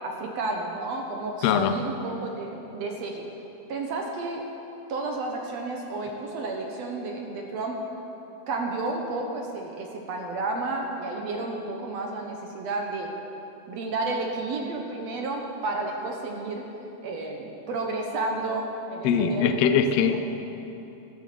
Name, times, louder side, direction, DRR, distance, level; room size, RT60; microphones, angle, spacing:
voice 1, 0.0-3.3 3.7-4.4 4.9-7.8 8.5-13.1 13.7-16.6 17.0-20.2, right 3 dB, 65° right, 1 dB, 2.0 m, -31 dB
voice 2, 1.4-1.7 19.0-20.2, left 7 dB, 75° left, 7 dB, 1.5 m, -21 dB
13.5 x 11.0 x 6.9 m, 3.0 s
omnidirectional pair, 3.7 m